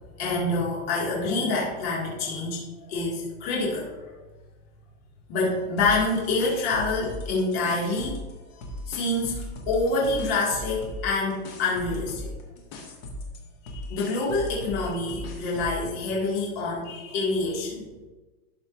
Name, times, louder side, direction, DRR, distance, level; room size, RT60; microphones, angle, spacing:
voice 1, 0.1-2.6 2.9-4.2 5.3-8.2 8.5-12.3 13.6-17.9, left 3 dB, 40° left, -5 dB, 2.0 m, -27 dB
sound 1, 5.8-8.3 8.6-15.9, left 1 dB, 20° left, 0.6 m, -38 dB
12.0 x 5.1 x 2.5 m, 1.2 s
supercardioid pair, 175°, 46 cm